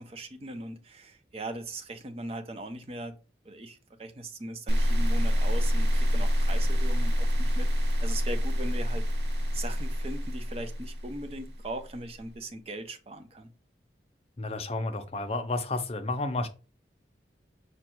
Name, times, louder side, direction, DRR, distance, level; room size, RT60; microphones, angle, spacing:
voice 1, 0.0-3.2 3.4-9.0 9.5-13.5, right 1 dB, 35° right, 0.5 m, -39 dB
sound 1, 4.7-11.8, equal, 65° right, 1.0 m, -26 dB
voice 2, 14.4-16.5, left 2 dB, 35° left, 0.5 m, -31 dB
5.1 x 2.3 x 4.4 m
head